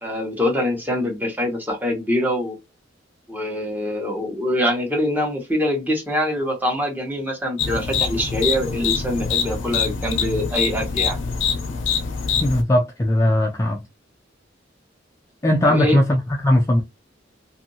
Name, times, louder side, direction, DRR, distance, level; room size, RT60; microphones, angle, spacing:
voice 1, 0.0-2.6 3.3-11.2 15.6-16.0, left 1 dB, 10° right, 1.0 m, -24 dB
sound 1, 7.6-12.6, left 6 dB, 80° left, 0.6 m, -24 dB
voice 2, 12.4-13.8 15.4-16.8, left 1 dB, 15° left, 0.4 m, -18 dB
2.7 x 2.6 x 2.7 m
head